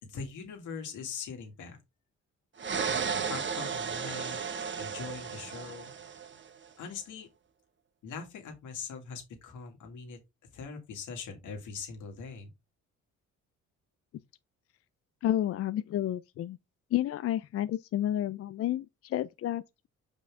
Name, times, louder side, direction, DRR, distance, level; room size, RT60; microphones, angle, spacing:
voice 1, 0.0-1.8 3.3-4.4 4.8-5.9 6.8-7.3 8.0-10.2 10.5-12.5, left 5 dB, 80° left, 2.2 m, -41 dB
sound 1, 2.6-6.5, right 6 dB, 40° right, 0.9 m, -34 dB
voice 2, 15.2-16.6 16.9-19.9, left 12 dB, 50° left, 0.4 m, -31 dB
5.7 x 5.0 x 3.5 m
cardioid pair, 90°, 30 cm